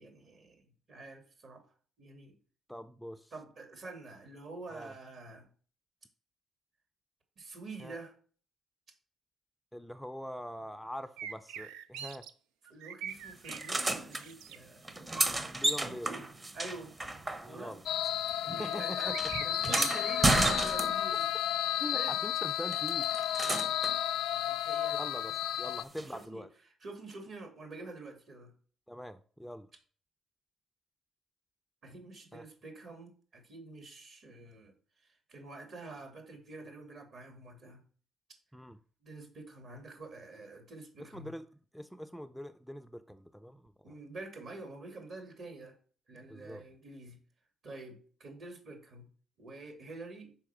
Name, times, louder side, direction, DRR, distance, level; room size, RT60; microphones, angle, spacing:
voice 1, 0.0-1.6 2.0-2.3 3.3-5.5 7.4-8.1 12.7-15.4 16.5-16.9 17.5-17.8 18.4-21.2 21.9-22.2 24.3-25.0 25.6-25.7 26.1-26.4 26.8-28.5 31.8-34.7 35.3-37.8 39.0-41.3 43.8-45.8 46.1-47.2 47.6-49.1 49.4-50.4, right 3 dB, 60° right, 5 dB, 2.6 m, -47 dB
voice 2, 2.7-3.3 4.7-4.9 7.8-8.0 9.7-12.2 15.5-16.2 17.4-17.9 18.6-19.2 19.6-19.9 21.8-23.1 24.9-26.5 28.9-29.7 32.3-32.4 38.5-38.8 41.0-41.5 41.7-43.9 46.3-46.6, equal, ahead, 10 dB, 0.5 m, -43 dB
sound 1, 11.2-12.3 12.7-13.7 14.1-14.6 18.9-19.8, right 8 dB, 90° right, 0.4 m, -43 dB
sound 2, 13.5-14.2 14.8-17.8 18.1-21.2 22.7-24.0 26.0-26.1, right 2 dB, 25° right, 1.0 m, -32 dB
sound 3, 17.9-25.8, left 12 dB, 80° left, 0.3 m, -32 dB
5.7 x 4.6 x 6.0 m, 0.43 s
supercardioid pair, 70°, 0 cm